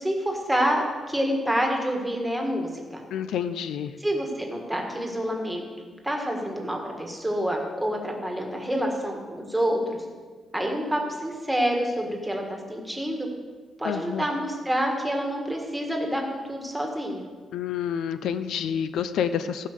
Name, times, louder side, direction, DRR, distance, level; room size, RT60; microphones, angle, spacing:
voice 1, 0.0-3.0 4.0-5.6 6.0-10.0 10.5-13.3 13.8-17.3, equal, 5° right, 1 dB, 1.5 m, -27 dB
voice 2, 3.1-3.9 13.8-14.3 17.5-19.7, left 8 dB, 85° left, 12 dB, 0.5 m, -28 dB
14.5 x 5.6 x 6.5 m, 1.5 s
cardioid pair, 160°, 0 cm